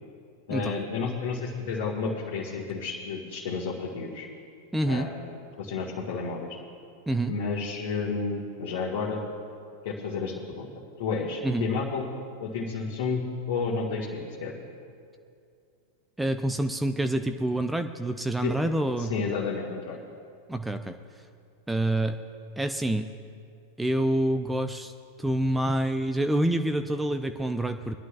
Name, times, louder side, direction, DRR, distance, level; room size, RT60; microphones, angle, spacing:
voice 1, 0.5-4.3 4.9-5.3 5.6-6.5 7.3-9.2 9.8-10.7 11.0-12.1 12.4-14.5 18.4-18.5 18.9-20.0, left 4 dB, 55° left, -4 dB, 1.8 m, -31 dB
voice 2, 4.7-5.1 7.1-7.3 11.4-11.7 16.2-19.1 20.5-20.9 21.7-22.2 22.6-23.1 23.8-24.9 25.2-27.9, right 1 dB, 5° right, 8 dB, 0.5 m, -27 dB
23.5 x 11.5 x 2.4 m, 2.4 s
figure-of-eight pair, 90°, 0 cm